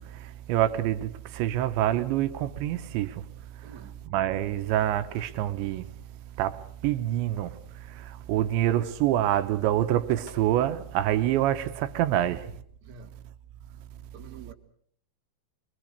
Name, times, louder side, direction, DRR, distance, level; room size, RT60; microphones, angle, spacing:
voice 1, 0.5-1.1 1.4-3.1 4.1-5.8 6.4-6.6 6.8-7.5 8.3-12.4, right 12 dB, 85° right, 3.4 m, -26 dB
voice 2, 3.6-4.0 12.1-12.4 12.8-13.1 14.1-14.5, right 5 dB, 45° right, 3.2 m, -47 dB
sound 1, 5.1-5.5 5.9-6.0 9.7-10.5, right 1 dB, 15° right, 2.2 m, -50 dB
25.0 x 23.0 x 6.7 m
omnidirectional pair, 5.0 m